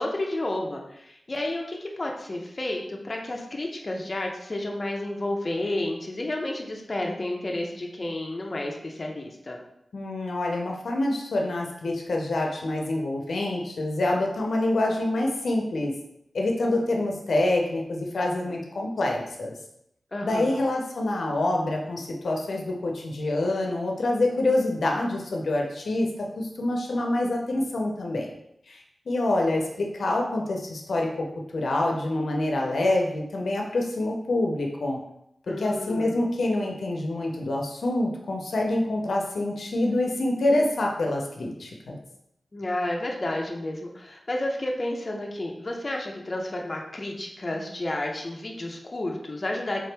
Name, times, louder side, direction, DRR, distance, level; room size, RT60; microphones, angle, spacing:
voice 1, 0.0-9.6 20.1-20.6 35.5-36.2 42.5-49.8, left 1 dB, 35° left, 0 dB, 0.6 m, -31 dB
voice 2, 9.9-15.9 16.3-19.5 20.2-28.3 28.7-31.1 31.5-35.0 35.5-42.0, left 2 dB, 85° left, 0 dB, 0.6 m, -26 dB
3.6 x 2.9 x 3.3 m, 0.79 s
wide cardioid pair, 105°, 0 cm